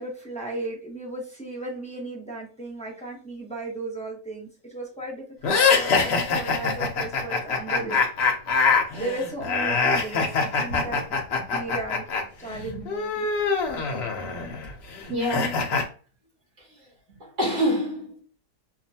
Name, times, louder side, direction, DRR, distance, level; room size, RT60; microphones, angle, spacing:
voice 1, 0.0-8.0 9.0-11.0 11.5-12.0 12.4-13.3, right 2 dB, 5° left, 0.7 m, -35 dB
sound 1, 5.4-12.2 12.5-15.8, left 5 dB, 55° left, 0.8 m, -24 dB
voice 2, 12.5-12.8 14.4-14.5 15.1-15.8 16.6-16.9 17.2-18.2, equal, 60° right, 2.4 m, -29 dB
5.0 x 2.4 x 2.7 m
omnidirectional pair, 1.7 m